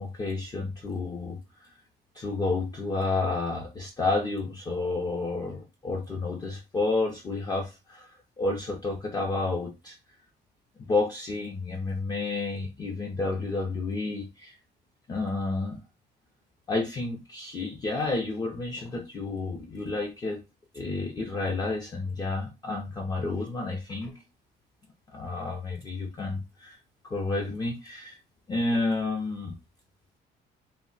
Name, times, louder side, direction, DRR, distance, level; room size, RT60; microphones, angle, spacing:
voice 1, 0.0-1.7 2.1-10.0 10.8-14.6 15.1-15.8 16.7-20.4 20.7-24.1 25.1-26.8 27.1-28.2 28.5-29.5, left 3 dB, 20° left, 0 dB, 0.4 m, -30 dB
2.2 x 2.0 x 3.8 m, 0.26 s
cardioid pair, 160°, 19 cm